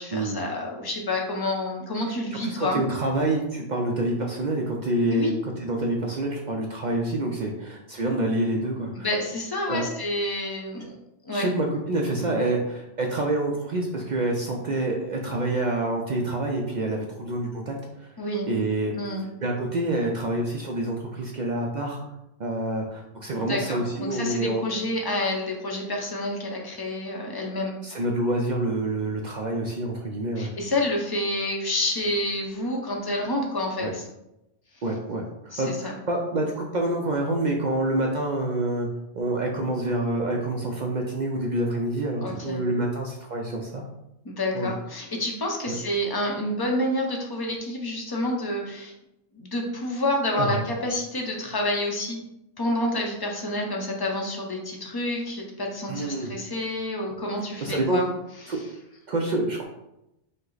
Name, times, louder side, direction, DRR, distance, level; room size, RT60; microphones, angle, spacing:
voice 1, 0.0-2.8 5.1-5.3 9.0-10.9 11.2-11.5 18.2-18.5 19.0-19.3 23.4-27.8 30.4-34.0 35.5-36.0 42.2-42.6 44.2-48.9 49.3-52.2 52.6-58.1 58.4-58.6, left 1 dB, 25° left, 0 dB, 0.5 m, -28 dB
voice 2, 2.3-5.3 5.6-9.1 9.7-9.9 11.3-18.1 18.5-19.0 19.4-22.0 22.4-24.6 27.8-30.5 33.8-33.9 34.8-38.9 39.1-43.8 44.5-44.7 45.7-45.8 50.3-50.6 55.9-56.3 57.6-58.0 58.5-58.7 59.1-59.6, right 2 dB, 55° right, 0 dB, 0.5 m, -27 dB
5.3 x 2.0 x 3.9 m, 0.87 s
omnidirectional pair, 1.2 m